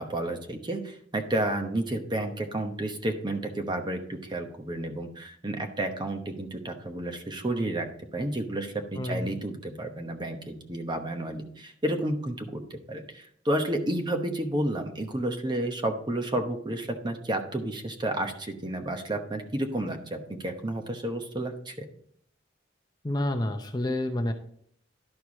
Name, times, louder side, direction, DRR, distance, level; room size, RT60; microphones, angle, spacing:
voice 1, 0.0-21.7, right 1 dB, 25° right, 5 dB, 1.0 m, -31 dB
voice 2, 9.0-9.4 23.0-24.3, left 1 dB, 20° left, 5 dB, 0.7 m, -29 dB
11.5 x 4.6 x 4.7 m, 0.65 s
head